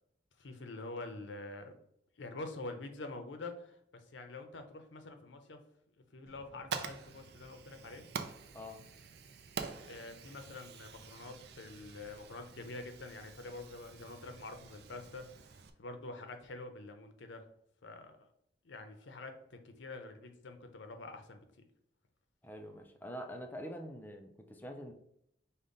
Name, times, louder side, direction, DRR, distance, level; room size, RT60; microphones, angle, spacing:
voice 1, 0.4-1.7 2.2-5.6 6.1-8.0 9.9-17.5 17.8-18.3 18.6-21.4, left 2 dB, 80° left, 7 dB, 0.6 m, -46 dB
Fire, 6.3-15.7, right 5 dB, 60° right, 0.4 m, -47 dB
voice 2, 22.4-24.9, equal, 10° left, 4 dB, 0.4 m, -45 dB
5.2 x 2.1 x 3.8 m, 0.74 s
head